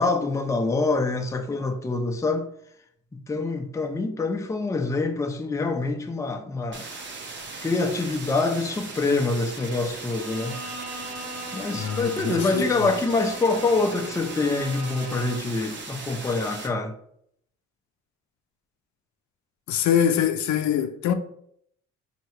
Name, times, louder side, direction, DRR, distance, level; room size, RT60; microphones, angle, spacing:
voice 1, 0.0-2.5 3.3-6.8 7.6-10.6 11.5-16.9, left 3 dB, 10° left, 0.4 m, -25 dB
sound 1, 6.7-16.7, right 3 dB, 40° right, 0.8 m, -38 dB
Bowed string instrument, 10.1-15.6, right 1 dB, 65° right, 1.2 m, -40 dB
voice 2, 11.8-12.9 19.7-21.1, left 9 dB, 70° left, 0.5 m, -24 dB
4.5 x 2.9 x 3.0 m
cardioid pair, 90°, 30 cm